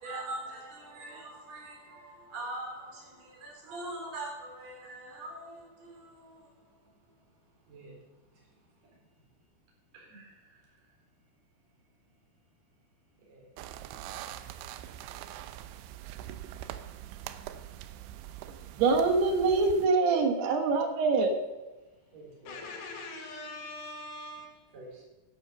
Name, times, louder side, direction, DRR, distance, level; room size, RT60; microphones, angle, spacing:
voice 1, 0.0-3.0 3.4-5.5 7.7-7.9 10.1-10.2 22.1-22.6 24.7-25.0, right 2 dB, 35° right, -2 dB, 4.8 m, -42 dB
sound 1, 13.6-19.9, right 12 dB, 80° right, 3.1 m, -43 dB
voice 2, 18.8-21.3, right 4 dB, 65° right, 5 dB, 3.0 m, -24 dB
voice 3, 22.5-24.7, left 2 dB, 75° left, 2 dB, 4.6 m, -42 dB
11.0 x 10.0 x 6.8 m, 1.1 s
omnidirectional pair, 5.6 m